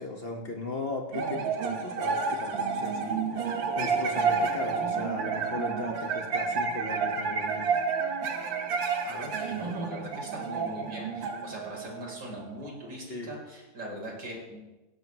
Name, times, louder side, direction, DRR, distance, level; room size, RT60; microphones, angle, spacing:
voice 1, 0.0-7.7 9.1-9.3 13.1-13.3, left 2 dB, 40° left, 2 dB, 0.8 m, -37 dB
sound 1, 1.1-12.7, right 5 dB, 55° right, 1.4 m, -30 dB
voice 2, 9.0-14.6, equal, 35° right, -1 dB, 4.3 m, -41 dB
17.5 x 17.0 x 3.1 m, 1.1 s
omnidirectional pair, 3.3 m